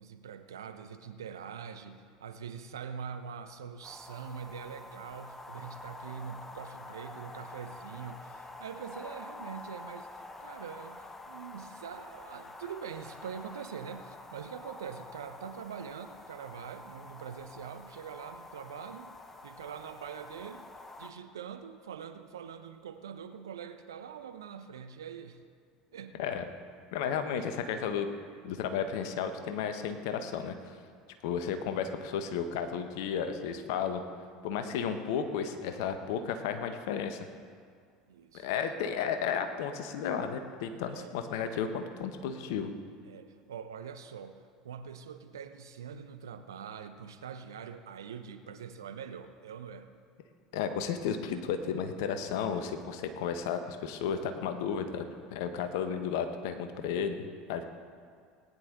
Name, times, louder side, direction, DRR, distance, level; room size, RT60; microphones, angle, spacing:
voice 1, 0.0-10.1 10.4-19.1 19.4-20.7 21.0-25.4 25.9-26.2 27.0-27.5 38.1-38.5 40.9-41.2 43.0-49.9, right 7 dB, 80° right, 9 dB, 0.8 m, -44 dB
sound 1, 3.8-21.1, left 2 dB, 15° left, 1.1 m, -48 dB
voice 2, 26.9-28.1 28.4-30.8 31.2-34.0 34.4-37.2 38.3-42.7 50.5-57.6, left 7 dB, 65° left, 8 dB, 1.1 m, -33 dB
18.5 x 10.0 x 3.9 m, 2.1 s
figure-of-eight pair, 75°, 2 cm